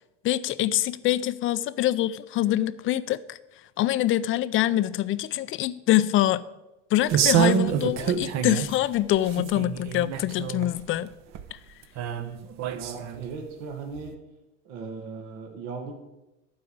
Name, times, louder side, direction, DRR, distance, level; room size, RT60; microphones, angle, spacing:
voice 1, 0.2-3.4 3.8-6.4 6.9-11.1 11.5-11.6, left 14 dB, 35° left, 16 dB, 0.5 m, -25 dB
sound 1, 7.1-8.8 9.2-10.8 11.3-11.4 12.0-13.3 14.0-14.1, right 9 dB, 45° right, 1.0 m, -26 dB
voice 2, 12.7-14.1 14.6-15.9, right 4 dB, 70° right, 3 dB, 2.0 m, -37 dB
12.0 x 4.8 x 8.6 m, 0.96 s
supercardioid pair, 125°, 38 cm